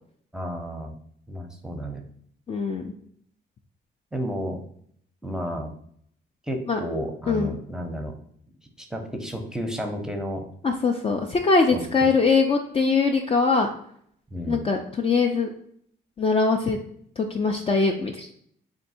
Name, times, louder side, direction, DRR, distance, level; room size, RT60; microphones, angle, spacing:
voice 1, 0.3-0.9 1.3-2.0 4.1-4.6 5.2-5.7 6.4-8.2 8.8-10.4 11.7-11.8 14.3-14.6, equal, 5° right, 3 dB, 0.7 m, -32 dB
voice 2, 2.5-2.9 6.7-6.8 7.3-7.5 10.6-13.7 14.5-15.5 16.2-16.8 17.2-18.3, left 4 dB, 30° left, 3 dB, 0.4 m, -22 dB
3.5 x 2.6 x 4.2 m, 0.65 s
cardioid pair, 90°, 20 cm